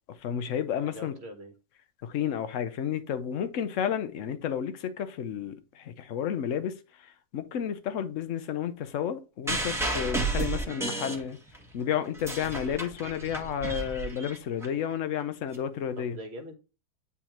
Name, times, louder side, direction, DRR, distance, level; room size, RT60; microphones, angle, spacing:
voice 1, 0.2-1.1 2.0-11.4 11.7-16.2, left 9 dB, 60° left, 1.0 m, -31 dB
voice 2, 0.8-1.5 4.2-4.4 10.4-11.2 11.8-12.1 16.0-16.5, equal, 45° right, 1.4 m, -44 dB
sound 1, 9.5-11.7 12.0-14.7 15.5-15.6, right 2 dB, ahead, 1.1 m, -32 dB
9.7 x 3.5 x 2.9 m
omnidirectional pair, 1.7 m